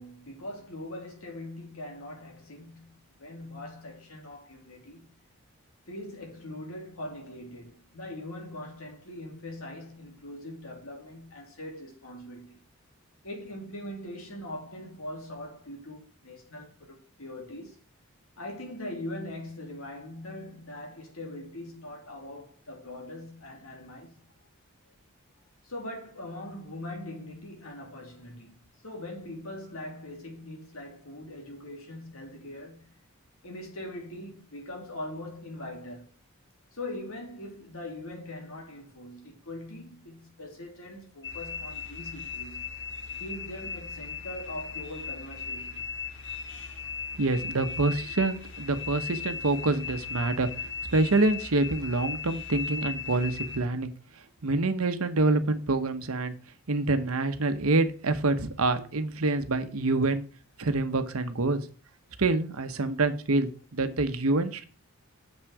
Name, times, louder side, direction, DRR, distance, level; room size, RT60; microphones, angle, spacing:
voice 1, 0.0-5.2 5.9-12.6 13.2-17.8 18.4-24.3 25.6-28.6 28.8-33.0 33.4-36.1 36.7-42.7 43.2-45.8, left 1 dB, 80° left, 2.9 m, -41 dB
sound 1, 41.2-53.6, left 6 dB, 60° left, 1.5 m, -37 dB
voice 2, 47.2-50.5 50.9-53.9 54.4-56.3 56.7-60.2 60.6-61.6 62.2-64.6, right 2 dB, 85° right, 1.0 m, -26 dB
7.3 x 6.3 x 4.7 m
head